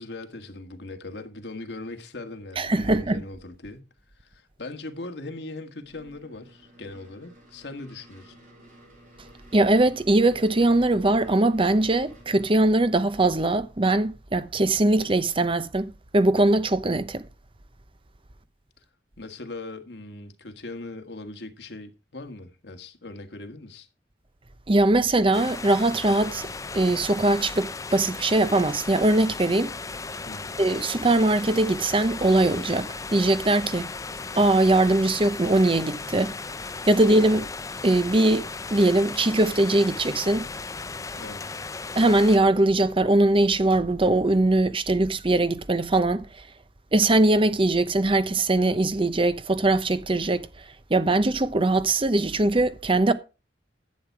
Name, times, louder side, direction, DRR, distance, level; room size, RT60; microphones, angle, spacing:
voice 1, 0.0-3.9 4.2-8.4 19.2-23.9 30.2-30.6 41.2-41.5, left 2 dB, 75° left, 1.7 m, -40 dB
voice 2, 2.6-3.2 9.5-17.2 24.7-26.5 26.7-29.7 30.6-33.9 34.4-36.3 36.9-37.5 37.8-38.4 38.7-40.5 41.9-46.3 46.9-50.5 50.9-53.1, right 2 dB, 30° right, 0.8 m, -21 dB
sound 1, 5.8-12.6, right 1 dB, 50° right, 5.5 m, -53 dB
sound 2, 25.3-42.4, left 4 dB, 20° left, 0.5 m, -36 dB
11.5 x 8.0 x 4.7 m
head